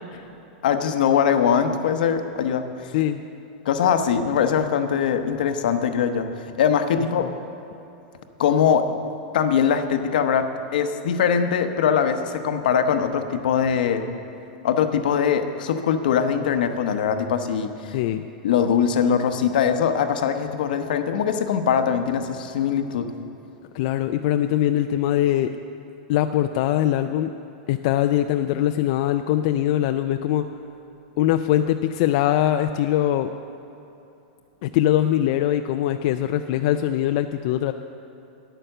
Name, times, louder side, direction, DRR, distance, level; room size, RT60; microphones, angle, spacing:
voice 1, 0.6-2.9 3.6-7.3 8.4-8.9 9.3-14.1 14.6-18.0 18.4-23.1, left 7 dB, 75° left, 8 dB, 0.9 m, -22 dB
voice 2, 17.9-18.2 23.7-25.5 26.1-27.3 27.7-30.4 31.2-33.3 34.6-37.7, left 12 dB, 50° left, 8 dB, 0.3 m, -22 dB
10.0 x 9.0 x 6.6 m, 2.9 s
supercardioid pair, 155°, 5 cm